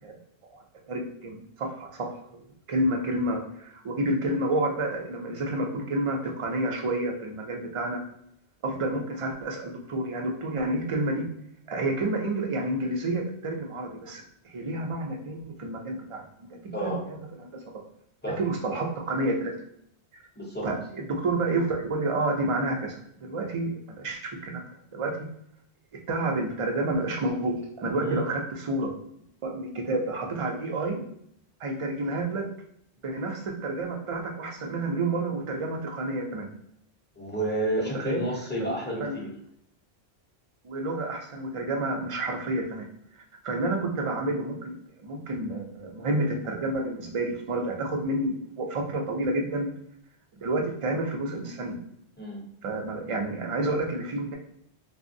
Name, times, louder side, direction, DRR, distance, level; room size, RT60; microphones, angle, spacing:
voice 1, 0.5-2.4 2.7-8.0 8.6-11.3 11.7-16.5 16.8-17.2 17.4-17.6 18.4-19.5 20.1-20.2 20.6-24.6 24.9-25.1 26.1-28.9 29.4-31.0 31.6-32.5 33.0-36.5 37.8-38.2 38.6-38.7 39.0-39.2 40.6-42.9 43.4-44.8 45.0-49.7 50.4-51.8 52.6-54.4, right 2 dB, 50° right, 1 dB, 0.4 m, -29 dB
voice 2, 16.7-17.0 18.2-18.4 20.4-20.7 28.0-28.2 37.2-39.3 52.2-52.4, right 1 dB, 15° left, -3 dB, 0.5 m, -30 dB
3.3 x 2.0 x 2.6 m, 0.71 s
omnidirectional pair, 1.1 m